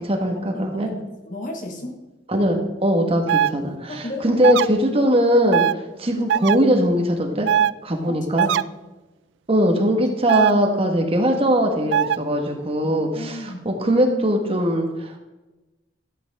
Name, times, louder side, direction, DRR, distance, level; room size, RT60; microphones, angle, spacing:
voice 1, 0.0-0.9 2.3-7.5 7.8-8.5 9.5-15.2, equal, 35° right, 2 dB, 1.6 m, -20 dB
voice 2, 0.5-2.0 3.9-4.2 4.6-4.7 8.4-8.5 10.2-10.3 12.8-13.6, left 1 dB, 45° left, 3 dB, 1.7 m, -34 dB
sound 1, 3.3-3.5 4.4-4.6 5.5-5.7 6.3-6.6 7.4-7.7 8.4-8.6 10.3-10.5 11.9-12.2, right 10 dB, 80° right, 0.3 m, -19 dB
13.5 x 8.3 x 3.6 m, 1.1 s
head